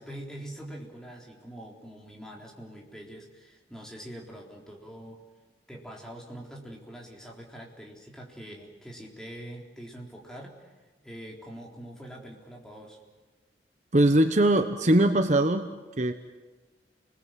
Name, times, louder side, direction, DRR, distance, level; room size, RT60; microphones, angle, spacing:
voice 1, 0.0-5.2 5.7-10.7 11.0-13.0, right 1 dB, 5° left, -1 dB, 3.7 m, -44 dB
voice 2, 13.9-15.7 16.0-16.1, right 1 dB, 40° right, 8 dB, 0.9 m, -21 dB
30.0 x 21.0 x 7.6 m, 1.3 s
head